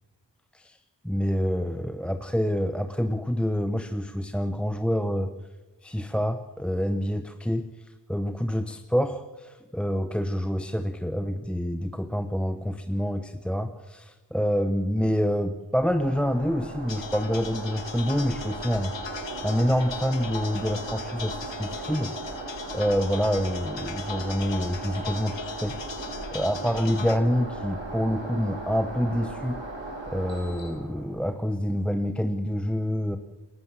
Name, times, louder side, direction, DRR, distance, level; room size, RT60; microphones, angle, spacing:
voice 1, 1.1-5.3 5.8-19.1 19.4-22.1 22.7-29.6 30.1-33.2, equal, ahead, 8 dB, 1.0 m, -27 dB
sound 1, 15.8-31.3, right 2 dB, 85° right, 6.8 m, -37 dB
sound 2, 16.9-27.2, left 5 dB, 85° left, 1.2 m, -40 dB
28.5 x 12.0 x 7.6 m, 1.1 s
wide cardioid pair, 55°, 43 cm